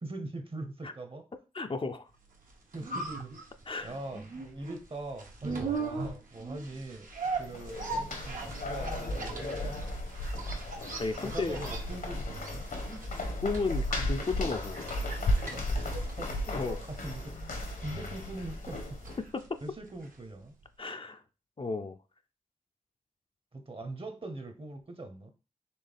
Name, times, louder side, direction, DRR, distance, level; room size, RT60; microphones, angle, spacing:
voice 1, 0.0-1.3 2.7-3.3 3.8-7.1 7.4-9.9 11.1-12.6 15.5-16.3 16.9-19.1 19.6-20.5 23.5-25.3, right 2 dB, 35° right, 1.0 m, -42 dB
voice 2, 1.5-2.1 3.6-4.0 11.0-11.6 13.4-14.8 16.5-16.8 19.3-19.4 20.8-21.2 21.6-22.0, left 3 dB, 35° left, 0.5 m, -33 dB
sound 1, 2.3-20.3 20.6-20.7, right 3 dB, 65° right, 1.0 m, -40 dB
sound 2, 7.1-19.2, left 1 dB, 65° left, 1.1 m, -35 dB
4.3 x 3.2 x 3.5 m
supercardioid pair, 40°, 15 cm